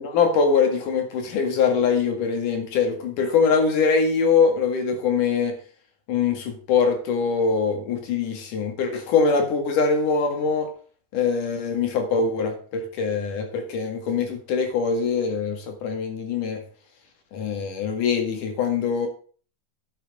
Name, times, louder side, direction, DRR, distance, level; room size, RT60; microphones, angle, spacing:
voice 1, 0.0-5.6 6.1-10.7 11.1-16.6 17.3-19.1, left 5 dB, 85° left, 5 dB, 3.5 m, -23 dB
10.5 x 7.2 x 5.4 m, 0.42 s
omnidirectional pair, 3.6 m